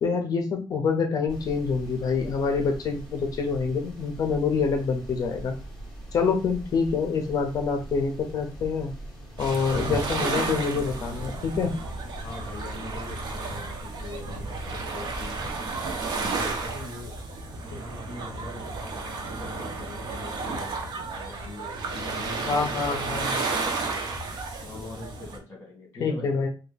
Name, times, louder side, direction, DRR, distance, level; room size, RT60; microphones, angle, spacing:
voice 1, 0.0-5.5 6.1-8.9 9.4-11.7 22.5-23.3 26.0-26.5, left 5 dB, 45° left, 4 dB, 0.5 m, -26 dB
sound 1, 1.3-16.7, right 1 dB, ahead, 1.2 m, -42 dB
sound 2, 9.4-25.4, right 3 dB, 60° right, 0.7 m, -32 dB
voice 2, 12.2-15.4 16.1-17.1 17.7-24.2 24.6-26.3, left 2 dB, 30° left, -1 dB, 1.6 m, -42 dB
3.3 x 2.3 x 3.2 m, 0.34 s
cardioid pair, 165°, 9 cm